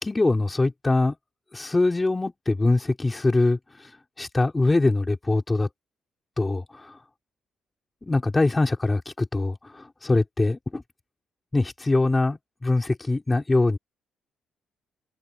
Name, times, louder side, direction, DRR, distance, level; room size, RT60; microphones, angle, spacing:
voice 1, 0.0-1.1 1.5-3.9 4.2-5.7 6.4-7.0 8.0-10.8 11.5-13.8, left 2 dB, 20° left, 4.9 m, -23 dB
cardioid pair, 90°, 0 cm